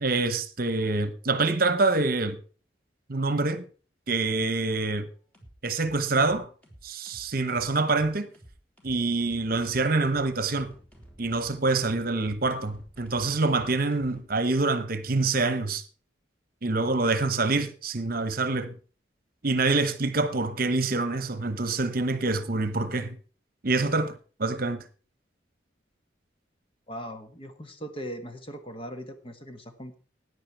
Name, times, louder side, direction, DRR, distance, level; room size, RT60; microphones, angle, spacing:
voice 1, 0.0-2.4 3.1-3.6 4.1-5.1 5.6-6.5 6.8-8.3 8.8-10.7 11.2-15.8 16.6-18.7 19.4-23.2 23.6-24.8, right 3 dB, 50° right, 1.1 m, -26 dB
sound 1, 4.6-4.9 5.3-14.2, right 1 dB, 10° left, 3.2 m, -52 dB
voice 2, 26.9-29.9, equal, 30° left, 1.5 m, -39 dB
14.5 x 9.8 x 4.7 m
head